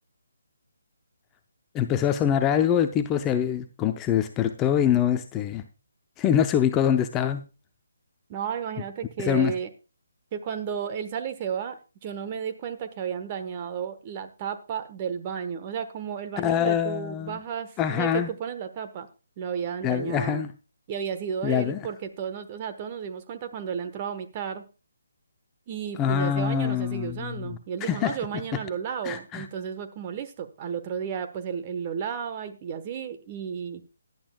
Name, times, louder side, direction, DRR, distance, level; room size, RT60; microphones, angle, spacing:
voice 1, 1.7-5.6 6.2-7.4 9.2-9.5 16.4-17.4 17.8-18.3 19.8-20.5 21.4-21.8 26.0-27.5 27.8-28.2 29.0-29.5, left 9 dB, 15° left, 0.6 m, -24 dB
voice 2, 8.3-9.7 10.3-19.1 19.4-20.4 20.9-24.6 25.7-33.8, right 7 dB, 25° right, 1.2 m, -33 dB
17.5 x 11.0 x 2.3 m
figure-of-eight pair, 145°, 0 cm